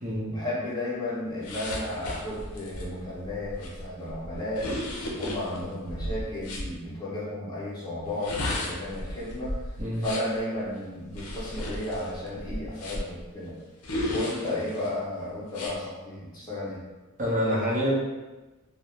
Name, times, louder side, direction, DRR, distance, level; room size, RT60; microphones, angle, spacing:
voice 1, 0.3-4.7 5.1-9.5 10.0-13.6 14.1-16.8, left 1 dB, 20° left, -8 dB, 0.8 m, -33 dB
sound 1, 1.4-6.7 8.0-10.4 11.1-13.2 13.8-14.9 15.5-15.7, left 1 dB, 75° left, 0.5 m, -34 dB
voice 2, 17.2-17.9, equal, 35° right, -6 dB, 0.8 m, -26 dB
2.5 x 2.1 x 3.1 m, 1.2 s
head